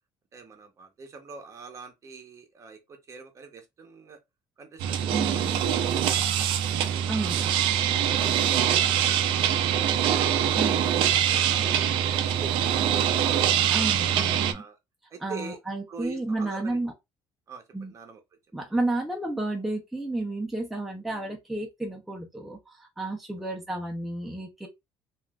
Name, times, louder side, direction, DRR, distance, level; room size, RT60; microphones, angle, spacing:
voice 1, 0.3-4.2 4.6-5.5 5.9-6.5 7.0-9.7 10.1-11.7 12.4-13.5 14.5-14.8 15.1-15.6 15.9-16.8 17.5-18.2, right 4 dB, 35° right, 0.8 m, -44 dB
sound 1, 4.8-14.5, right 10 dB, 75° right, 0.4 m, -24 dB
voice 2, 5.1-5.6 7.1-7.5 10.6-11.0 13.7-14.6 15.2-16.9 17.7-17.9 18.5-24.7, right 2 dB, ahead, 0.6 m, -32 dB
3.2 x 2.5 x 2.3 m
cardioid pair, 125°, 9 cm